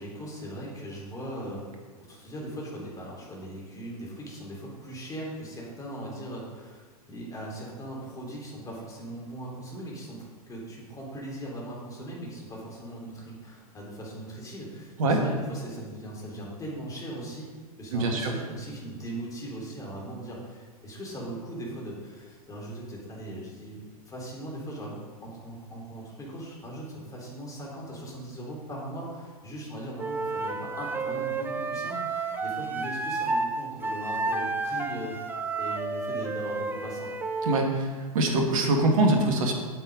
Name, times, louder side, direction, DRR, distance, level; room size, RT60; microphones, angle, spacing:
voice 1, 0.0-1.6 2.1-6.8 7.1-17.5 17.8-35.2 35.6-37.1 37.6-37.7, right 1 dB, 20° left, -3 dB, 3.4 m, -39 dB
voice 2, 17.9-18.3 37.4-37.7 38.1-39.5, right 2 dB, 60° right, 2 dB, 2.0 m, -23 dB
Wind instrument woodwind instrument, 30.0-33.5 33.8-37.6, right 3 dB, 10° right, 0.7 m, -31 dB
8.8 x 8.2 x 5.3 m, 1.5 s
figure-of-eight pair, 100°, 19 cm